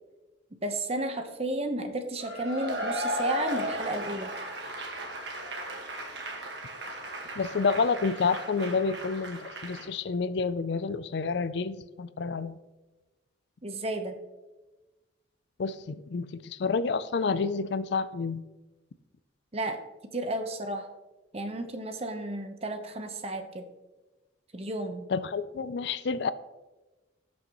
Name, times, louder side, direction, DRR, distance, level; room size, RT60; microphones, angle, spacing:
voice 1, 0.6-4.3 13.6-14.2 19.5-19.8 20.1-20.9 21.3-23.7 24.5-25.1, right 1 dB, 35° right, 6 dB, 0.9 m, -32 dB
Cheering / Applause / Crowd, 2.2-9.9, equal, 65° right, 1.6 m, -36 dB
voice 2, 7.4-12.6 15.6-18.4 25.1-26.3, left 4 dB, 65° left, 15 dB, 0.4 m, -29 dB
17.0 x 6.4 x 3.0 m, 1.1 s
head